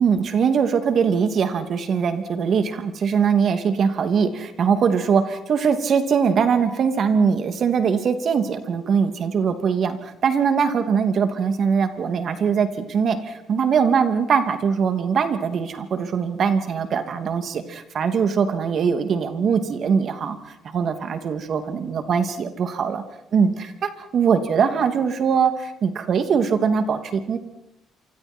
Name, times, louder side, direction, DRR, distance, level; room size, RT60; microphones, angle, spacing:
voice 1, 0.0-23.0 23.3-27.4, right 6 dB, 60° right, 7 dB, 2.7 m, -22 dB
27.5 x 24.5 x 4.6 m, 0.84 s
supercardioid pair, 75°, 0 cm